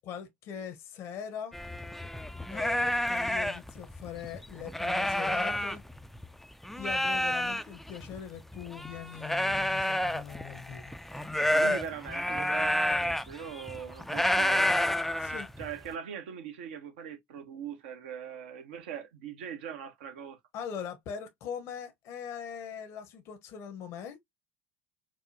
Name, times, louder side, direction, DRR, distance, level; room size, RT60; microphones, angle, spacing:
voice 1, 0.0-1.5 2.5-5.8 6.8-10.9 11.5-11.9 15.2-15.5 20.5-24.2, left 8 dB, 55° left, 0.8 m, -41 dB
sound 1, 1.5-6.3 6.6-15.9, left 1 dB, 5° left, 0.4 m, -30 dB
voice 2, 11.5-15.0 15.6-20.4, right 8 dB, 75° right, 1.0 m, -41 dB
4.6 x 2.1 x 2.6 m
hypercardioid pair, 75°, 6 cm